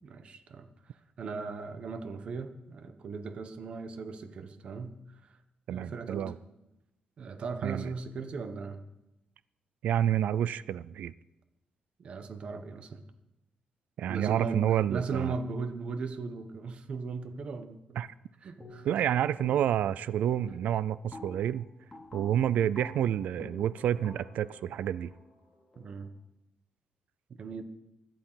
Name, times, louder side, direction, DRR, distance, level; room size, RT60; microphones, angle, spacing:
voice 1, 0.0-5.4 5.7-6.3 7.2-8.8 12.0-13.0 14.0-18.0 18.4-18.9 25.8-26.1 27.4-27.6, right 4 dB, 45° right, 9 dB, 1.2 m, -38 dB
voice 2, 5.7-6.3 7.6-7.9 9.8-11.1 14.0-15.3 18.0-18.1 18.8-21.7 22.1-25.1, right 10 dB, 75° right, 17 dB, 0.4 m, -29 dB
sound 1, 18.6-19.0 19.4-19.9 20.2-26.0, left 1 dB, 10° left, 3.5 m, -48 dB
17.0 x 11.5 x 5.8 m, 0.94 s
wide cardioid pair, 175°, 3 cm